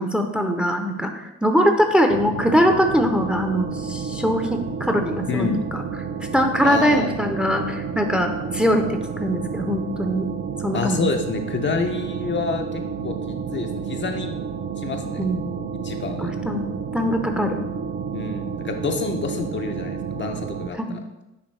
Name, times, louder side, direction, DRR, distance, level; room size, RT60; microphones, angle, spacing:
voice 1, 0.0-5.8 6.3-10.3 10.6-11.1 15.2-15.4 16.2-16.6 16.9-17.6 20.7-21.0, equal, 5° right, 4 dB, 0.6 m, -22 dB
sound 1, 2.1-20.7, right 6 dB, 45° right, 0.6 m, -30 dB
voice 2, 5.3-5.6 6.6-7.2 10.7-14.3 14.8-15.2 15.8-16.3 18.1-20.8, left 5 dB, 40° left, 4 dB, 0.6 m, -28 dB
9.6 x 3.4 x 3.2 m, 0.95 s
cardioid pair, 90°, 30 cm